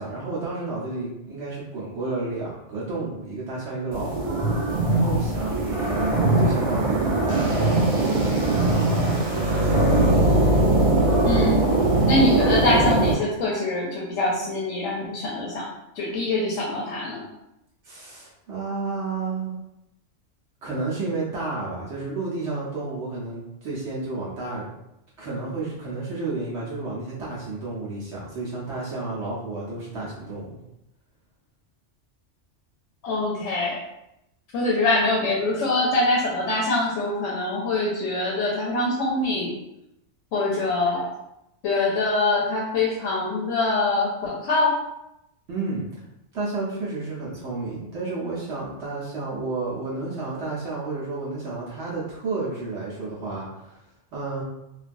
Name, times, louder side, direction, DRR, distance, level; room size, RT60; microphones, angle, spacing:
voice 1, 0.0-4.2 4.9-9.8 17.8-19.6 20.6-24.8 25.2-30.6 45.5-45.8 46.3-53.8 54.1-54.4, right 3 dB, 70° right, -7 dB, 1.0 m, -31 dB
sound 1, 3.9-13.1, right 2 dB, 40° right, 0.6 m, -21 dB
voice 2, 11.2-11.6 12.1-15.7 15.9-17.2 33.0-33.8 34.5-39.6 40.3-41.1 41.6-44.8, left 2 dB, 85° left, -4 dB, 1.0 m, -24 dB
3.2 x 2.2 x 2.5 m, 0.86 s
omnidirectional pair, 1.3 m